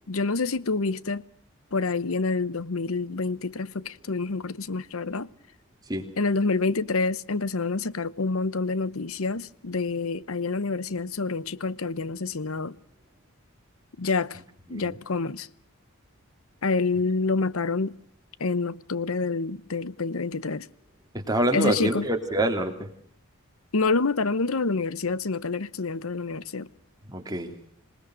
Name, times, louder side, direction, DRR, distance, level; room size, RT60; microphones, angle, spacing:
voice 1, 0.1-1.2 1.7-5.3 6.2-12.8 14.0-14.4 14.7-15.5 16.6-17.9 18.4-20.7 21.5-22.0 23.7-26.7, left 3 dB, 75° left, 0.9 m, -27 dB
voice 2, 21.1-22.9 27.1-27.5, right 1 dB, 15° right, 3.3 m, -26 dB
26.5 x 19.5 x 6.5 m
head